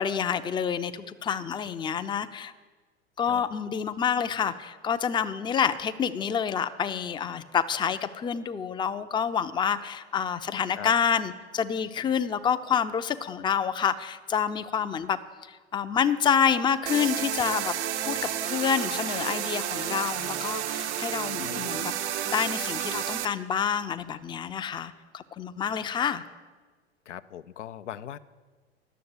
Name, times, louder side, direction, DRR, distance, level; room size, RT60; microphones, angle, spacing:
voice 1, 0.0-2.5 3.2-15.2 15.5-17.7 18.1-21.9 22.2-26.2, left 7 dB, 15° left, 10 dB, 0.5 m, -28 dB
sound 1, 16.9-23.3, right 10 dB, 70° right, 0.8 m, -31 dB
voice 2, 27.1-28.2, left 10 dB, 85° left, 13 dB, 0.6 m, -40 dB
11.5 x 7.1 x 7.9 m, 1.4 s
hypercardioid pair, 90°, 35 cm